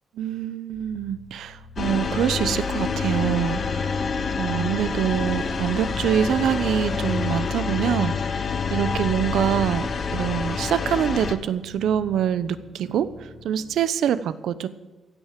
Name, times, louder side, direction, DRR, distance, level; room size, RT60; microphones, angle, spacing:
voice 1, 0.1-4.0 4.4-8.4 8.7-14.7, right 9 dB, 90° right, 15 dB, 0.8 m, -25 dB
sound 1, 0.7-13.8, left 1 dB, 80° left, 5.1 m, -42 dB
sound 2, 1.8-11.3, left 5 dB, 40° left, 1.0 m, -27 dB
15.5 x 9.2 x 7.6 m, 1.2 s
wide cardioid pair, 165°, 0 cm